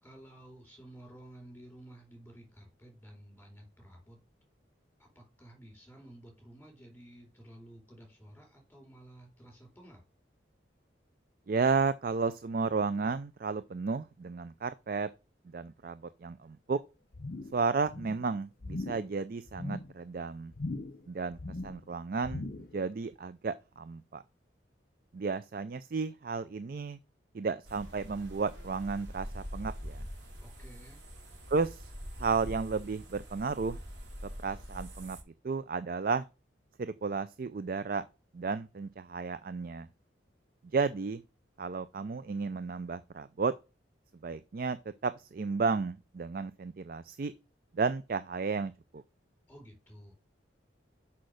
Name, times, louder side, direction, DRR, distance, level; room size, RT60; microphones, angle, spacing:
voice 1, 0.0-4.2 5.0-10.0 30.4-31.0 49.5-50.1, right 1 dB, 10° left, 3.8 m, -53 dB
voice 2, 11.5-15.1 15.5-16.8 17.5-20.5 21.1-21.4 21.6-24.2 25.1-27.0 27.3-30.0 31.5-31.9 32.2-33.8 34.4-35.2 35.4-36.2 36.8-38.0 38.3-39.9 40.7-41.2 41.6-43.5 44.2-44.8 45.0-47.3 47.7-49.0, right 4 dB, 50° right, 0.4 m, -33 dB
sound 1, 17.1-17.6 17.9-18.3 18.6-19.1 19.5-19.9 20.5-21.1 21.3-21.8 22.2-22.8 23.1-23.2, left 2 dB, 50° left, 0.7 m, -39 dB
sound 2, 27.6-35.2, equal, 80° right, 3.5 m, -44 dB
6.4 x 5.7 x 6.3 m
head